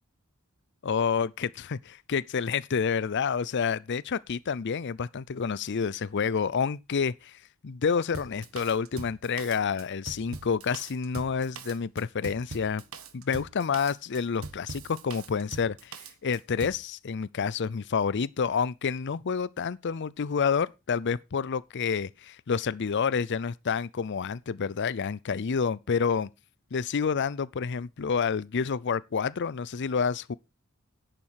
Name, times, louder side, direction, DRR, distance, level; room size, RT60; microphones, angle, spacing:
voice 1, 0.8-7.4 7.6-12.8 13.1-26.3 26.7-30.3, left 6 dB, 55° left, 0.5 m, -29 dB
Drum kit, 8.1-16.8, right 4 dB, 70° right, 1.5 m, -42 dB
10.5 x 9.0 x 4.7 m
head